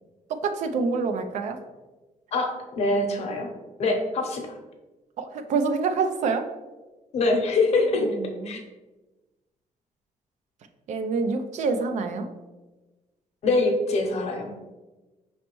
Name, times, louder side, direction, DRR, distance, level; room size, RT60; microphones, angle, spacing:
voice 1, 0.3-1.6 5.2-6.5 7.7-7.9 8.2-8.5 10.9-12.3, right 4 dB, 65° right, 8 dB, 0.4 m, -26 dB
voice 2, 2.3-3.5 3.8-4.5 7.1-8.2 8.4-8.6 13.4-14.5, left 2 dB, 55° left, 2 dB, 0.8 m, -24 dB
5.1 x 3.2 x 3.0 m, 1.2 s
cardioid pair, 145°, 13 cm